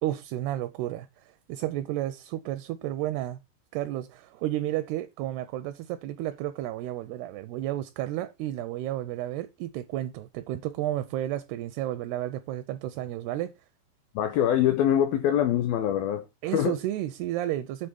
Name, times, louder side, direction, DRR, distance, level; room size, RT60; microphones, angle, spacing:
voice 1, 0.0-3.4 3.7-13.5 16.4-17.9, right 13 dB, 80° right, 2.4 m, -32 dB
voice 2, 14.2-16.3 16.5-16.7, left 10 dB, 80° left, 2.2 m, -24 dB
9.0 x 3.9 x 6.9 m
omnidirectional pair, 5.2 m